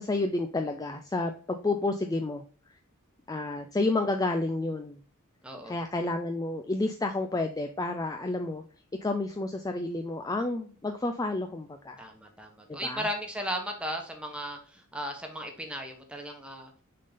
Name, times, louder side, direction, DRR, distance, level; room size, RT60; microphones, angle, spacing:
voice 1, 0.0-2.4 3.3-5.0 5.6-8.6 9.0-12.1 12.7-13.1, left 2 dB, 15° left, 6 dB, 0.4 m, -30 dB
voice 2, 5.4-5.8 12.0-16.7, equal, 5° right, 3 dB, 1.1 m, -36 dB
6.4 x 3.7 x 4.0 m, 0.42 s
head